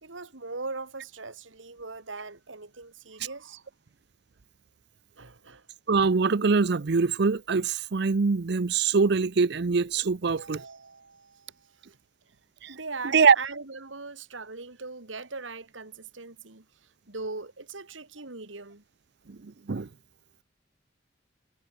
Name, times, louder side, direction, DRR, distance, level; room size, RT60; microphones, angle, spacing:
voice 1, 0.0-3.6 5.2-5.7 10.3-12.0 12.7-16.7 17.1-18.8, right 3 dB, 85° right, 2.6 m, -40 dB
voice 2, 5.9-10.6 12.6-12.7 13.1-13.4 19.3-19.9, right 5 dB, 60° right, 0.6 m, -23 dB
head